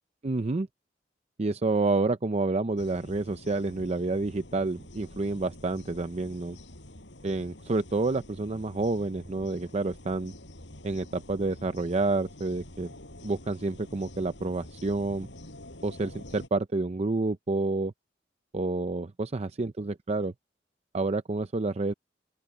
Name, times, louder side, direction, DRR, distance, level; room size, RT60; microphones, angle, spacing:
voice 1, 0.2-0.7 1.4-6.6 7.2-10.3 10.8-12.9 13.2-15.3 15.8-17.9 18.5-20.3 20.9-21.9, right 3 dB, 35° right, 0.6 m, -29 dB
sound 1, 2.8-16.5, left 1 dB, 90° left, 6.1 m, -48 dB
open air
head